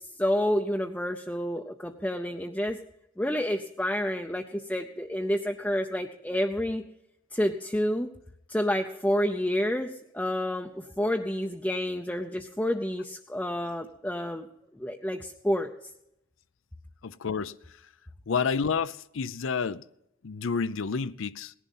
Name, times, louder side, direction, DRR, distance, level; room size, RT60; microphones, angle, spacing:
voice 1, 0.2-2.8 3.2-6.8 7.3-8.1 8.5-9.9 10.1-14.5 14.8-15.7, equal, 5° left, 0.6 m, -29 dB
voice 2, 17.0-17.6 18.3-19.8 20.2-21.5, left 5 dB, 65° left, 0.5 m, -29 dB
18.0 x 11.0 x 5.5 m
head